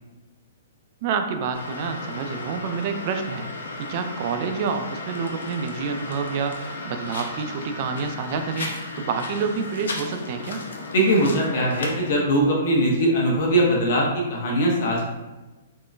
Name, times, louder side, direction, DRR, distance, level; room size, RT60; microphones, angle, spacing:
voice 1, 1.0-3.5 3.8-10.6, right 5 dB, 45° right, 6 dB, 0.3 m, -28 dB
sound 1, 1.5-12.1, left 2 dB, 85° left, 0.5 m, -35 dB
voice 2, 10.9-15.0, right 1 dB, 60° left, -2 dB, 0.8 m, -21 dB
3.6 x 2.1 x 2.5 m, 1.1 s
hypercardioid pair, 150°, 0 cm